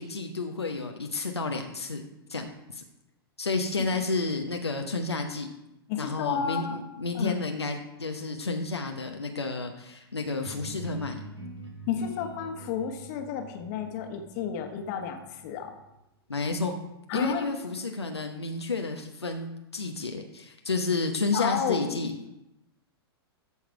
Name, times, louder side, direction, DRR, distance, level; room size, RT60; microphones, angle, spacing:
voice 1, 0.0-2.0 2.3-2.8 3.4-5.5 6.0-11.2 16.3-16.8 17.1-22.1, left 3 dB, 80° left, 3 dB, 0.9 m, -31 dB
voice 2, 5.9-6.8 7.1-7.3 11.9-15.7 17.1-17.6 21.3-22.1, left 7 dB, 45° left, 5 dB, 1.4 m, -31 dB
sound 1, 10.4-16.1, right 2 dB, 85° right, 2.1 m, -45 dB
13.5 x 4.8 x 4.8 m, 0.90 s
figure-of-eight pair, 100°, 13 cm